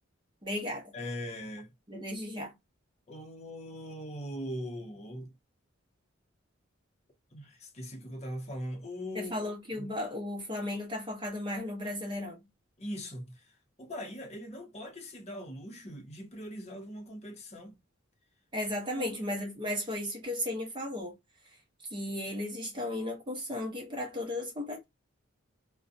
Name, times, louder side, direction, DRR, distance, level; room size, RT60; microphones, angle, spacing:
voice 1, 0.4-0.9 1.9-2.5 9.1-12.4 18.5-21.1 21.9-24.8, left 1 dB, 25° right, 0.8 m, -35 dB
voice 2, 0.9-1.7 3.1-5.3 7.3-9.4 9.8-9.9 12.8-13.5 13.8-17.8 18.9-19.3, equal, 35° left, 0.7 m, -41 dB
2.5 x 2.1 x 2.5 m
head